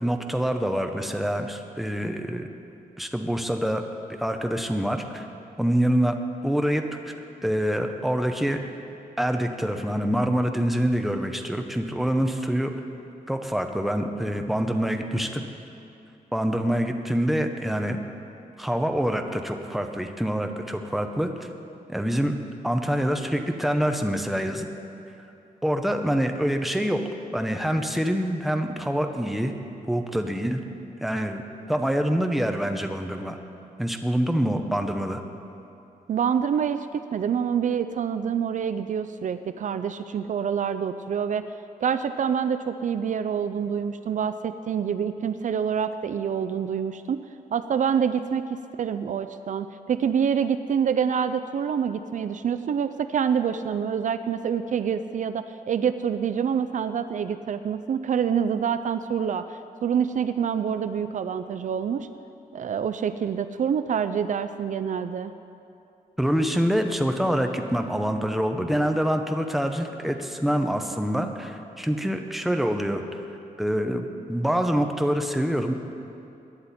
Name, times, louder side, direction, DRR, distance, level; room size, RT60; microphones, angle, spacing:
voice 1, 0.0-2.5 3.0-3.8 4.2-5.3 5.6-6.2 6.4-7.1 7.4-8.6 9.2-12.7 13.3-15.4 16.3-18.0 18.6-21.3 21.9-22.3 22.6-24.7 25.6-27.0 27.3-29.5 29.9-30.6 31.0-31.4 31.7-33.4 33.8-35.2 66.2-73.0 73.6-75.7, equal, ahead, 5 dB, 0.9 m, -25 dB
voice 2, 36.1-41.5 41.8-47.2 47.5-62.1 62.5-65.3, right 7 dB, 55° right, 11 dB, 0.4 m, -26 dB
22.5 x 10.0 x 4.3 m, 2.7 s
wide cardioid pair, 125°, 15 cm